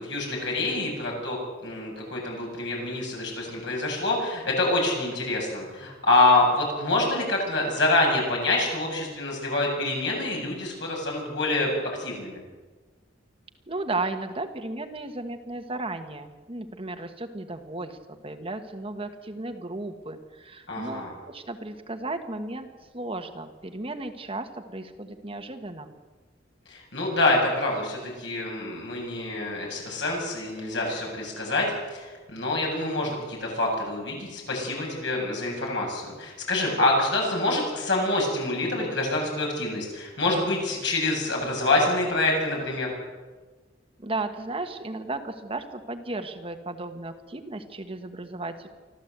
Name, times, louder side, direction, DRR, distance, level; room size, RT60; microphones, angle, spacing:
voice 1, 0.0-12.4 20.7-21.1 26.7-42.9, left 2 dB, 70° left, 0 dB, 7.8 m, -26 dB
voice 2, 13.7-25.9 44.0-48.7, right 2 dB, 30° right, 6 dB, 1.4 m, -35 dB
25.0 x 14.5 x 8.1 m, 1.3 s
head